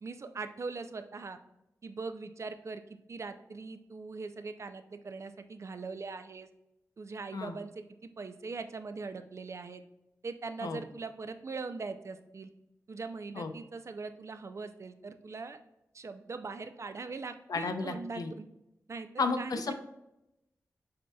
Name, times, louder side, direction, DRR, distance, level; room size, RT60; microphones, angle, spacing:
voice 1, 0.0-1.4 1.8-6.5 7.0-9.8 10.2-12.5 12.9-15.6 15.9-18.5 18.9-19.7, right 4 dB, 50° right, 9 dB, 0.4 m, -41 dB
voice 2, 17.5-18.3 19.2-19.7, left 4 dB, 75° left, 8 dB, 0.5 m, -33 dB
7.5 x 2.8 x 2.2 m, 0.88 s
wide cardioid pair, 105°, 6 cm